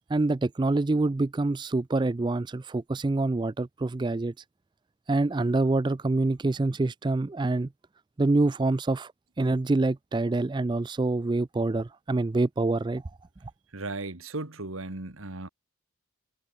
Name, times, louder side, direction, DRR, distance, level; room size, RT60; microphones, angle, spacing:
voice 1, 0.1-4.3 5.1-7.7 8.2-9.1 9.4-13.1, right 2 dB, 20° right, 0.3 m, -26 dB
voice 2, 13.7-15.5, right 2 dB, 80° right, 2.3 m, -36 dB
head